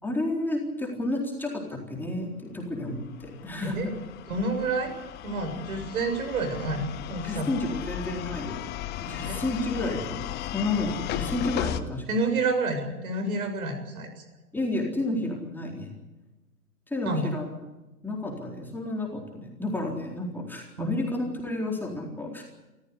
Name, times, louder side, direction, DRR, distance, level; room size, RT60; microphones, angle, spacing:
voice 1, 0.0-3.9 7.2-8.6 9.0-12.0 14.5-15.9 16.9-17.5 18.0-22.4, left 2 dB, 5° left, -1 dB, 4.0 m, -31 dB
sound 1, 2.9-11.8, left 13 dB, 20° left, 1.1 m, -36 dB
voice 2, 4.3-4.9 5.2-7.5 9.2-9.4 12.1-14.2 17.1-17.3 20.8-20.9, right 3 dB, 65° right, 7 dB, 7.3 m, -29 dB
27.0 x 15.0 x 8.3 m, 1.1 s
hypercardioid pair, 130°, 46 cm